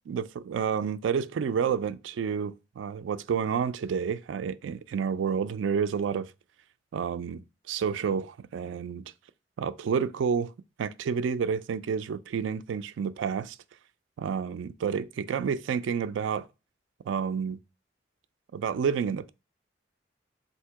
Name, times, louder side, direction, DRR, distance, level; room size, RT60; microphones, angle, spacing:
voice 1, 0.1-6.3 6.9-9.0 9.6-10.5 10.8-13.6 14.2-16.5 17.0-17.6 18.5-19.3, right 6 dB, 80° right, 0.3 m, -29 dB
3.6 x 2.7 x 4.5 m
head